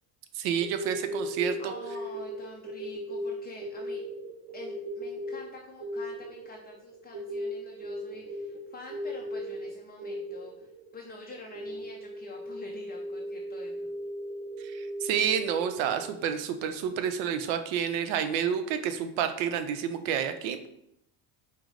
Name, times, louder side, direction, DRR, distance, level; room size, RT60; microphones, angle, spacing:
voice 1, 0.4-1.7 14.6-20.7, right 8 dB, 75° right, 9 dB, 0.6 m, -29 dB
sound 1, 0.6-16.3, equal, 30° right, 0.6 m, -37 dB
voice 2, 1.6-4.0 4.5-13.9, left 3 dB, 25° left, 1 dB, 0.3 m, -47 dB
4.7 x 2.0 x 3.6 m, 0.76 s
cardioid pair, 110°, 46 cm